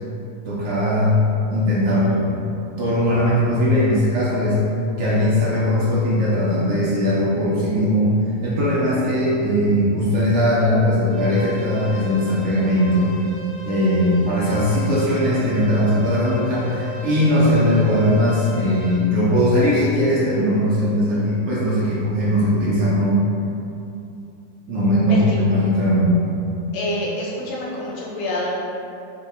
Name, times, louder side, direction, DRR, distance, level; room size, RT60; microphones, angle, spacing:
voice 1, 0.5-1.2 1.5-2.4 2.8-4.6 5.0-8.1 8.4-13.1 13.6-23.2 24.7-26.2, equal, 75° right, -7 dB, 0.7 m, -19 dB
sound 1, 11.1-19.0, left 1 dB, 50° left, 0.5 m, -37 dB
voice 2, 25.1-25.4 26.7-28.6, left 1 dB, 80° left, -4 dB, 1.2 m, -27 dB
3.8 x 2.1 x 3.4 m, 2.6 s
omnidirectional pair, 1.9 m